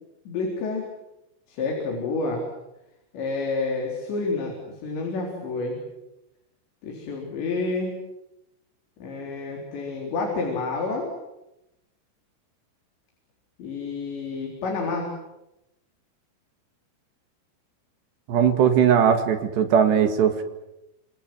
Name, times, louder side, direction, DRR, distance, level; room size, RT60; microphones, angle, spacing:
voice 1, 0.3-0.9 1.5-2.5 3.1-4.6 4.8-5.8 6.8-7.9 9.0-11.1 13.6-15.1, left 3 dB, 65° left, 0 dB, 6.2 m, -29 dB
voice 2, 18.3-20.4, right 8 dB, 65° right, 7 dB, 3.8 m, -19 dB
27.5 x 26.5 x 7.8 m, 0.91 s
omnidirectional pair, 5.6 m